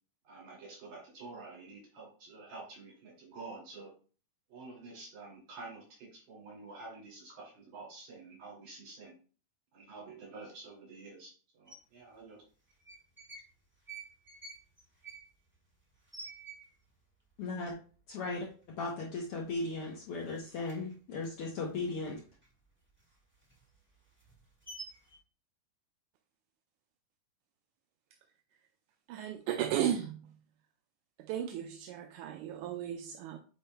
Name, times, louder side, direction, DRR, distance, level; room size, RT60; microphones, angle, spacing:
voice 1, 0.2-3.9 4.5-9.2 9.7-12.4, right 3 dB, 60° right, 3.8 m, -49 dB
sound 1, 11.7-11.8 12.7-13.5 13.8-17.0 17.3-17.4 17.7-18.2 18.6-18.8 19.1-19.9 20.1-22.5 22.9-25.2, right 3 dB, 15° right, 0.4 m, -50 dB
voice 2, 17.4-17.7 18.1-18.5 18.8-22.2, left 3 dB, 80° left, 1.3 m, -37 dB
voice 3, 29.1-30.3 31.2-33.4, right 10 dB, 80° right, 1.8 m, -35 dB
8.6 x 5.3 x 2.2 m
omnidirectional pair, 3.8 m